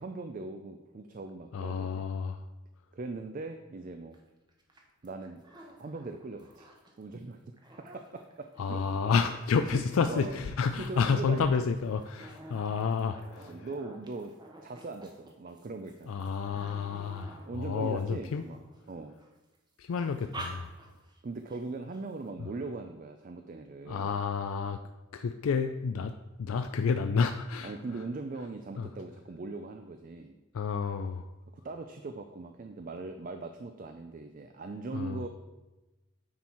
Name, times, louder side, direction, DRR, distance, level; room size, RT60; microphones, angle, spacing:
voice 1, 0.0-2.0 2.9-4.2 5.0-5.4 5.8-6.7 7.0-8.8 9.7-10.4 10.7-11.7 13.5-14.3 14.6-16.2 17.5-18.6 18.9-19.2 21.2-24.1 27.6-30.4 31.5-35.3, right 3 dB, 40° right, 7 dB, 0.4 m, -40 dB
voice 2, 1.5-2.4 8.6-13.7 16.1-18.4 19.8-20.7 23.9-24.8 25.1-26.1 26.4-27.7 28.8-28.9 30.5-31.3 34.9-35.2, left 5 dB, 85° left, 8 dB, 0.4 m, -30 dB
sound 1, 4.1-4.2 4.5-7.0 7.4-18.8 19.2-19.6 19.9-21.2 21.5-21.6 21.9-22.3, right 1 dB, 20° right, 0.9 m, -49 dB
9.4 x 4.4 x 4.4 m, 1.1 s
head